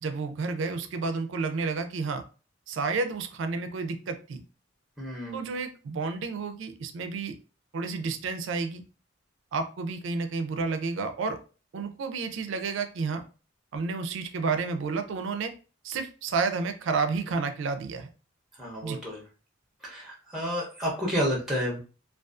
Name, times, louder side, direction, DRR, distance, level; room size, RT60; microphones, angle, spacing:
voice 1, 0.0-2.2 2.7-4.4 5.3-7.3 7.7-8.8 9.5-11.4 11.7-13.2 13.7-15.5 15.8-18.1 18.8-19.0, right 4 dB, 65° right, 8 dB, 0.4 m, -30 dB
voice 2, 5.0-5.5 18.6-19.2 19.8-21.8, equal, ahead, -2 dB, 0.5 m, -30 dB
2.3 x 2.3 x 2.4 m, 0.35 s
head